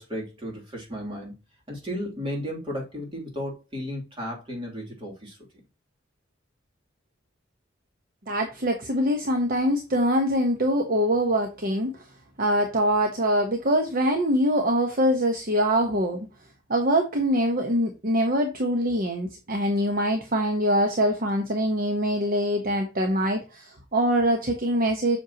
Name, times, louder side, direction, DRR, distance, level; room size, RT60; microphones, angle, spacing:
voice 1, 0.0-1.4 1.7-5.4, equal, 30° right, 3.0 m, -34 dB
voice 2, 8.3-12.0 12.4-16.3 16.7-25.2, equal, 50° right, 1.1 m, -24 dB
7.7 x 6.4 x 2.9 m
head